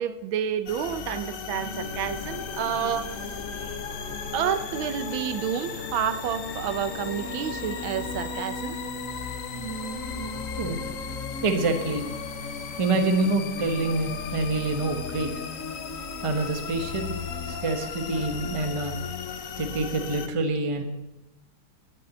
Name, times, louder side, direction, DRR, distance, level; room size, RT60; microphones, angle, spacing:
voice 1, 0.0-3.1 4.3-8.8, right 9 dB, 75° right, 12 dB, 1.5 m, -29 dB
sound 1, 0.7-20.3, left 6 dB, 55° left, 1.0 m, -35 dB
sound 2, 1.5-8.4, left 2 dB, 25° left, 1.8 m, -42 dB
sound 3, 7.2-13.2 13.8-18.7, right 3 dB, 55° right, 0.9 m, -42 dB
voice 2, 11.4-12.1 12.8-15.3 16.2-17.1 17.5-18.9 19.6-20.8, right 3 dB, 20° right, 6 dB, 0.9 m, -26 dB
11.5 x 8.4 x 8.0 m, 0.99 s
omnidirectional pair, 2.3 m